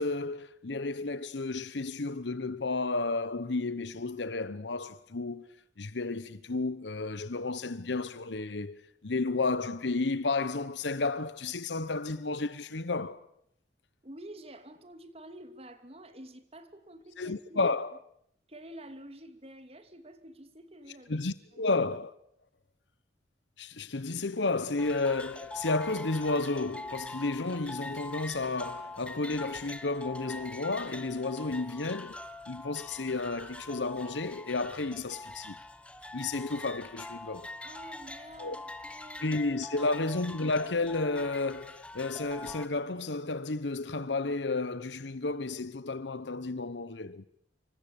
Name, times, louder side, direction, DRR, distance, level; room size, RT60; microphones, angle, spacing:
voice 1, 0.0-5.5 5.8-13.2 17.2-18.0 21.1-22.1 23.6-32.2 32.5-35.6 36.1-37.5 38.4-38.6 39.2-47.3, left 3 dB, 85° left, 1.0 m, -32 dB
voice 2, 14.0-17.7 18.5-21.3 21.5-21.7 37.6-40.0, right 1 dB, 35° right, 2.8 m, -49 dB
sound 1, 24.8-42.7, left 2 dB, 5° left, 1.4 m, -44 dB
27.5 x 24.5 x 8.7 m
head